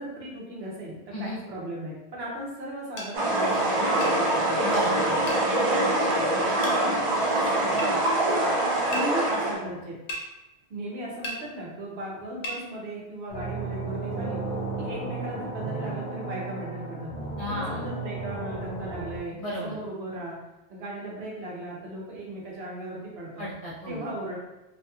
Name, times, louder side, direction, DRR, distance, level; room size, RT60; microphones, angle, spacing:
voice 1, 0.0-4.6 5.5-8.0 8.4-10.0 10.7-14.4 14.8-17.1 17.5-20.4 20.7-23.5 23.9-24.4, right 1 dB, 70° right, -4 dB, 1.0 m, -37 dB
sound 1, 3.0-3.1 4.0-4.2 5.3-5.4 6.6-6.8 7.8-7.9 8.9-9.1 10.1-10.3 11.2-11.4 12.4-12.6, equal, 90° left, 1.0 m, -34 dB
sound 2, 3.1-9.5, right 1 dB, 50° right, 0.4 m, -24 dB
voice 2, 4.6-5.3 17.4-17.9 19.4-19.8 23.4-24.1, equal, 40° left, -9 dB, 0.7 m, -34 dB
sound 3, 13.3-19.2, right 3 dB, 55° left, 1.1 m, -34 dB
2.7 x 2.7 x 2.3 m, 1.0 s
omnidirectional pair, 1.1 m